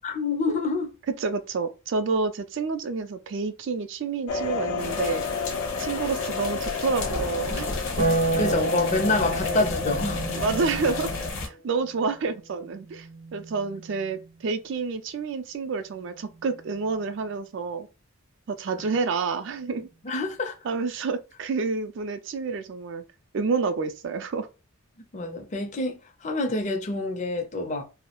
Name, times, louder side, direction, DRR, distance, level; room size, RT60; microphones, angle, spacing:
voice 1, 0.0-0.9 8.4-10.4 18.8-18.9 20.0-20.5 25.1-27.8, left 2 dB, 35° left, 0.5 m, -27 dB
voice 2, 1.2-5.2 5.8-7.7 9.3-9.6 10.3-11.1 11.4-17.9 18.5-19.9 20.6-23.0 23.3-24.5, right 4 dB, 55° right, 0.3 m, -29 dB
sound 1, 4.3-11.3, left 5 dB, 85° left, 0.5 m, -31 dB
sound 2, 4.8-11.5, left 2 dB, 60° left, 0.8 m, -33 dB
Harp, 8.0-14.5 16.1-17.1, right 2 dB, 70° right, 0.7 m, -32 dB
2.2 x 2.0 x 2.9 m
head